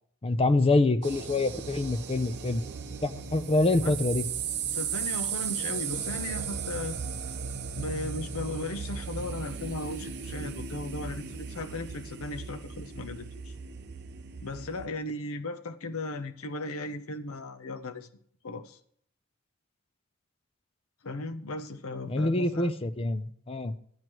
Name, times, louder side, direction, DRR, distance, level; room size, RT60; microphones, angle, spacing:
voice 1, 0.2-2.6 3.0-4.3 22.1-23.7, left 2 dB, 25° left, 11 dB, 0.5 m, -26 dB
sound 1, 1.0-14.9, right 6 dB, 50° right, 0.7 m, -36 dB
voice 2, 4.7-7.0 7.8-13.5 14.4-18.1 18.4-18.8 21.0-22.7, left 2 dB, 70° left, 8 dB, 0.7 m, -36 dB
13.0 x 9.2 x 3.0 m, 0.64 s
head